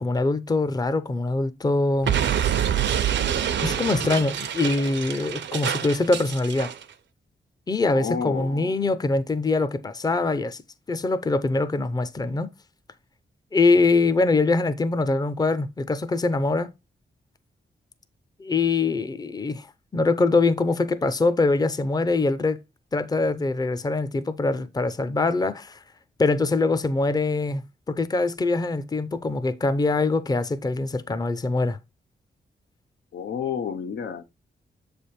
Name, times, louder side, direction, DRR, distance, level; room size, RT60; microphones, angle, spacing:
voice 1, 0.0-2.6 3.6-6.7 7.7-10.6 10.9-12.5 13.5-16.7 18.4-19.7 19.9-22.6 22.9-25.8 26.2-31.8, left 3 dB, 20° left, 0.6 m, -23 dB
Explosion, 2.0-6.8, right 9 dB, 90° right, 0.7 m, -26 dB
voice 2, 7.9-8.7 33.1-34.2, left 7 dB, 85° left, 0.7 m, -30 dB
7.2 x 3.4 x 4.2 m
wide cardioid pair, 100°, 18 cm